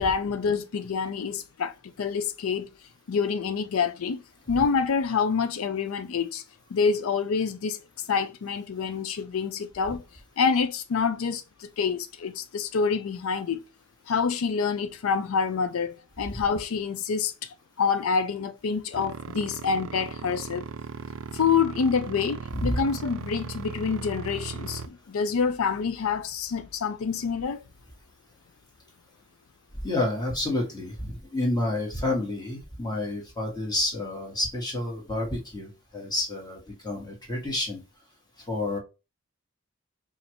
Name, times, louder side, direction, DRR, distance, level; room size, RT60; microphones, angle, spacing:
voice 1, 0.0-2.7 3.1-4.2 4.5-6.4 6.7-10.0 10.4-13.6 14.1-20.6 21.3-27.6, left 5 dB, 85° left, 0.4 m, -27 dB
sound 1, 18.9-24.9, right 5 dB, 70° right, 0.4 m, -37 dB
voice 2, 29.8-37.8 38.5-38.8, left 1 dB, 20° left, 1.6 m, -29 dB
5.0 x 2.5 x 2.9 m
head